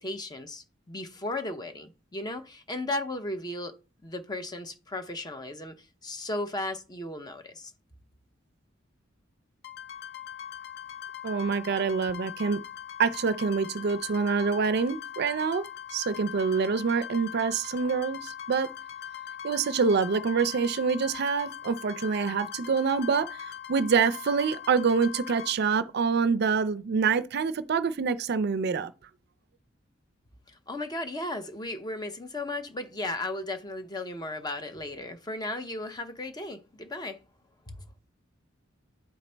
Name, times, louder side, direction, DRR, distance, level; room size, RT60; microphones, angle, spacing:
voice 1, 0.0-3.7 4.0-5.7 6.0-7.7 30.7-37.2 37.7-37.8, left 2 dB, 20° left, 0.7 m, -35 dB
sound 1, 9.6-25.5, left 9 dB, 60° left, 0.7 m, -41 dB
voice 2, 11.2-12.6 13.0-15.6 15.9-18.7 19.4-28.9, right 5 dB, 55° right, 0.4 m, -26 dB
10.0 x 4.1 x 3.3 m
head